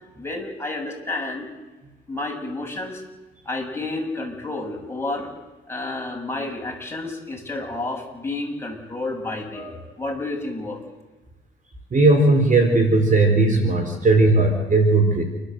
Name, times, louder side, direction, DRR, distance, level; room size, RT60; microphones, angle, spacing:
voice 1, 0.2-1.5 2.1-3.0 3.5-5.3 5.7-10.8, left 2 dB, 10° left, -1 dB, 7.7 m, -30 dB
voice 2, 11.9-15.2, right 2 dB, 40° right, 4 dB, 4.6 m, -17 dB
29.5 x 13.5 x 8.0 m, 1.1 s
cardioid pair, 90°, 20 cm